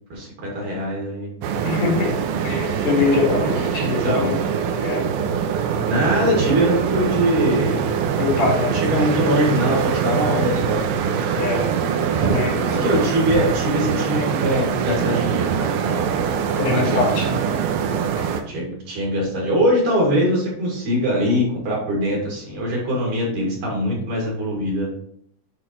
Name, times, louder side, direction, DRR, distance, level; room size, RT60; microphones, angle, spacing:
voice 1, 0.1-1.3 4.0-4.4 5.9-7.8 8.4-10.9 12.8-16.0 16.7-17.1 18.5-24.9, equal, 55° right, -4 dB, 3.5 m, -22 dB
sound 1, 1.4-18.4, right 7 dB, 80° right, 2.5 m, -23 dB
voice 2, 1.6-2.1 2.4-4.4 4.8-5.1 8.2-8.7 11.3-11.7 12.2-12.9 16.6-17.4 18.2-18.3, left 4 dB, 75° left, -2 dB, 3.9 m, -23 dB
11.0 x 4.0 x 3.1 m, 0.67 s
omnidirectional pair, 4.4 m